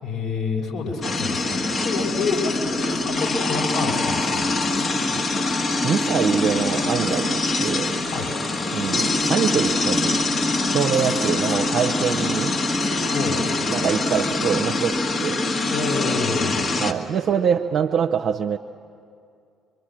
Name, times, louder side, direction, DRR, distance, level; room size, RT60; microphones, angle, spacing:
voice 1, 0.0-4.6 8.1-8.4 13.1-13.4 15.7-16.8, left 4 dB, 60° left, -1 dB, 5.8 m, -28 dB
sound 1, 1.0-16.9, left 2 dB, 40° left, 1.8 m, -24 dB
voice 2, 5.8-8.0 8.7-10.2 10.7-12.6 13.7-15.4 16.8-18.6, right 7 dB, 55° right, 3 dB, 0.7 m, -24 dB
25.0 x 24.0 x 7.5 m, 2.4 s
hypercardioid pair, 50°, 0 cm